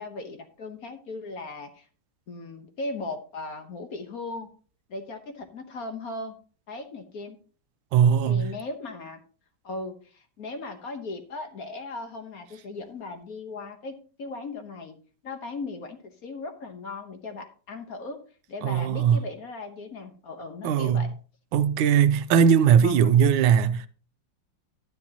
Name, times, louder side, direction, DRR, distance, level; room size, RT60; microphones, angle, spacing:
voice 1, 0.0-1.8 2.3-4.5 4.9-6.4 6.7-7.4 8.2-9.2 9.6-15.0 15.2-18.2 18.5-21.1 22.8-23.1, left 3 dB, 55° left, 1.3 m, -37 dB
voice 2, 7.9-8.5 18.6-19.2 20.6-21.1 21.5-23.9, right 8 dB, 85° right, 1.4 m, -19 dB
12.0 x 9.7 x 2.9 m
omnidirectional pair, 2.2 m